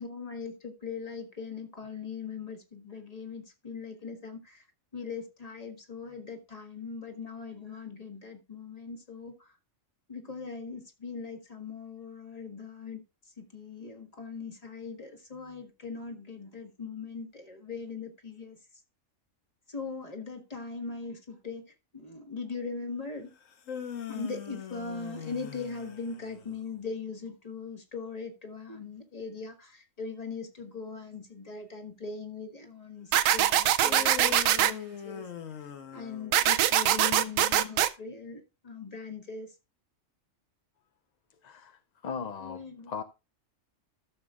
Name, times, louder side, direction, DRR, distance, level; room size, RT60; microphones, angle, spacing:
voice 1, 0.0-4.6 4.9-9.5 10.1-13.0 13.4-18.6 19.7-21.6 21.9-23.3 24.1-35.3 35.9-39.5 42.4-42.9, left 4 dB, 30° left, 1.5 m, -40 dB
sound 1, 23.4-26.7 33.8-36.8, left 8 dB, 80° left, 1.3 m, -41 dB
sound 2, 33.1-34.7 36.3-37.9, right 11 dB, 85° right, 1.0 m, -23 dB
voice 2, 41.4-43.0, left 6 dB, 50° left, 0.5 m, -39 dB
14.0 x 6.9 x 2.4 m
omnidirectional pair, 1.3 m